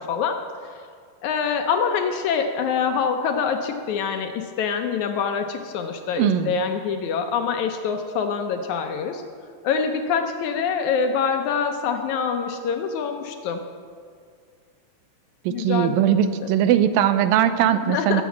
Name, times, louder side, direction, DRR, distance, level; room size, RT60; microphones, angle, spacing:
voice 1, 0.1-0.4 1.2-9.2 9.6-13.6 15.5-16.5 17.9-18.2, left 6 dB, 75° left, 5 dB, 1.8 m, -25 dB
voice 2, 6.2-6.6 15.5-18.2, right 10 dB, 80° right, 11 dB, 2.4 m, -20 dB
18.0 x 7.3 x 7.1 m, 2.2 s
omnidirectional pair, 4.1 m